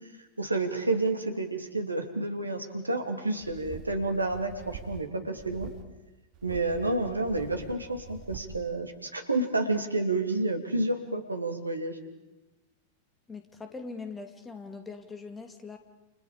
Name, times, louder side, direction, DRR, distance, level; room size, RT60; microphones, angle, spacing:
voice 1, 0.2-5.7 6.4-12.0, right 2 dB, 85° right, 5 dB, 2.9 m, -30 dB
sound 1, 3.4-5.1 5.4-5.8 6.3-8.6, right 6 dB, 40° right, 2.5 m, -45 dB
voice 2, 13.3-15.8, left 4 dB, 15° left, 6 dB, 2.8 m, -41 dB
30.0 x 29.0 x 5.2 m, 1.0 s
figure-of-eight pair, 90°, 0 cm